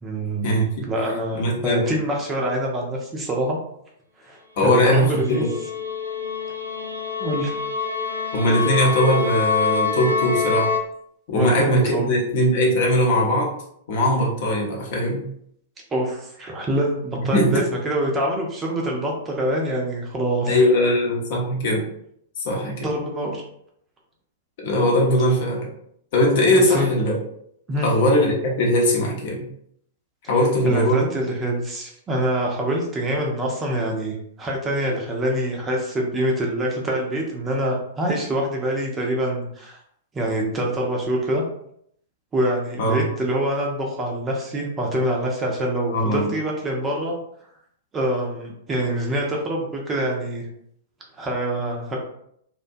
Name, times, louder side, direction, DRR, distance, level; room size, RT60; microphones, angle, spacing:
voice 1, 0.0-3.6 4.2-5.5 7.2-7.6 11.3-12.1 15.9-20.6 22.8-23.4 26.7-26.9 27.7-27.9 30.6-39.8 40.1-41.4 42.3-47.2 47.9-50.5 51.2-52.0, right 1 dB, 20° right, -1 dB, 0.5 m, -25 dB
voice 2, 1.3-1.8 4.6-5.5 8.3-10.7 11.3-13.5 13.9-15.2 17.2-17.6 20.5-21.9 22.4-22.9 24.6-25.7 26.1-27.2 27.8-29.5 30.3-31.1 42.8-43.0 45.9-46.3, left 1 dB, 50° left, -2 dB, 0.7 m, -20 dB
sound 1, 4.9-10.8, left 5 dB, 90° right, 0.4 m, -26 dB
2.5 x 2.2 x 2.6 m, 0.70 s
figure-of-eight pair, 100°, 0 cm